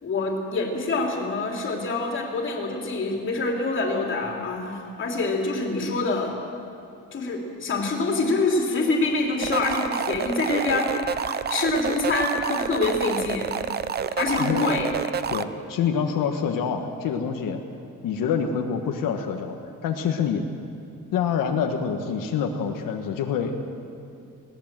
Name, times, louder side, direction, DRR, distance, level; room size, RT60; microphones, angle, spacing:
voice 1, 0.0-6.4 7.1-13.6 14.1-14.9, left 3 dB, 40° left, 0 dB, 3.1 m, -26 dB
sound 1, 9.4-15.4, right 7 dB, 30° right, 0.5 m, -28 dB
voice 2, 15.3-17.6 18.0-19.6 19.8-20.4 21.1-23.5, left 7 dB, 90° left, 3 dB, 1.5 m, -26 dB
20.0 x 18.5 x 7.5 m, 2.6 s
cardioid pair, 170°, 32 cm